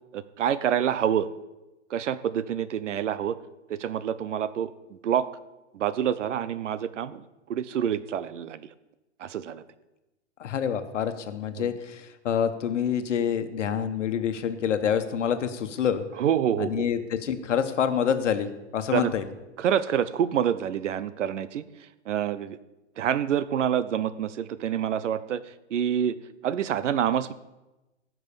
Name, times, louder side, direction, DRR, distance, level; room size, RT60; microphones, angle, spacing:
voice 1, 0.1-1.3 1.9-3.4 3.7-4.7 5.0-5.3 5.7-7.2 7.5-8.7 9.2-9.6 11.5-11.7 16.1-16.9 18.9-19.1 19.6-21.6 22.1-22.6 23.0-25.4 25.7-26.2 26.4-27.3, right 9 dB, 85° right, 15 dB, 0.9 m, -27 dB
voice 2, 10.4-16.0 16.6-19.2, left 8 dB, 90° left, 10 dB, 1.3 m, -27 dB
16.0 x 6.1 x 6.9 m, 1.0 s
hypercardioid pair, 170°, 35 cm